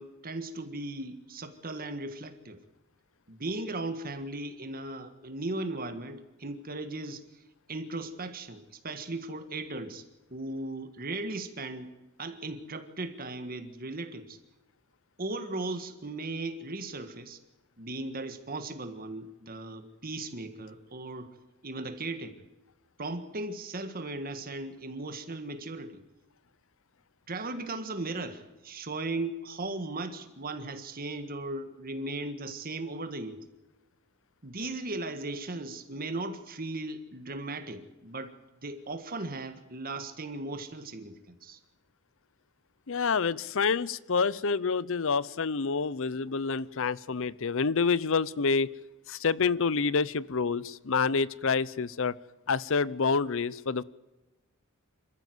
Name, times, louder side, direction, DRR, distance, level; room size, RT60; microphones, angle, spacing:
voice 1, 0.0-2.6 3.3-7.2 7.7-10.0 10.3-11.9 12.2-14.4 15.2-17.4 17.8-21.3 21.6-22.3 23.0-26.0 27.3-33.4 34.4-38.3 38.6-41.6, right 2 dB, 45° right, 8 dB, 1.7 m, -37 dB
voice 2, 42.9-48.7 49.1-52.1 52.5-53.8, left 5 dB, 65° left, 20 dB, 0.7 m, -28 dB
26.5 x 14.5 x 7.9 m, 1.1 s
head